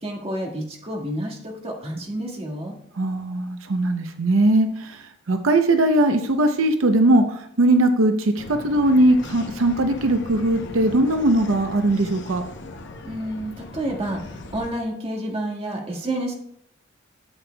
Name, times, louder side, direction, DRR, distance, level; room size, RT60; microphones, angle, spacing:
voice 1, 0.0-2.7 13.0-16.3, right 1 dB, 30° right, -1 dB, 1.7 m, -29 dB
voice 2, 2.9-12.4, right 1 dB, 90° right, 7 dB, 0.7 m, -20 dB
sound 1, 8.4-14.7, left 2 dB, 60° left, 0.8 m, -38 dB
12.5 x 7.8 x 2.3 m, 0.71 s
head